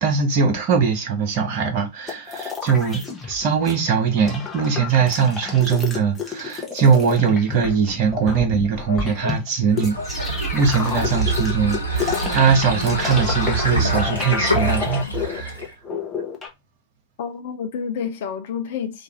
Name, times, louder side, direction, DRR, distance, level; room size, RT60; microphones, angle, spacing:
voice 1, 0.0-15.7, right 6 dB, 45° right, 0.7 m, -21 dB
sound 1, 2.1-3.7 4.0-16.5, left 6 dB, 15° left, 0.7 m, -30 dB
voice 2, 8.9-9.3 10.0-10.1 12.1-12.2 17.2-19.0, left 6 dB, 55° left, 0.4 m, -29 dB
sound 2, 9.7-15.7, right 2 dB, 85° left, 0.9 m, -25 dB
2.4 x 2.4 x 2.8 m
figure-of-eight pair, 95°, 0 cm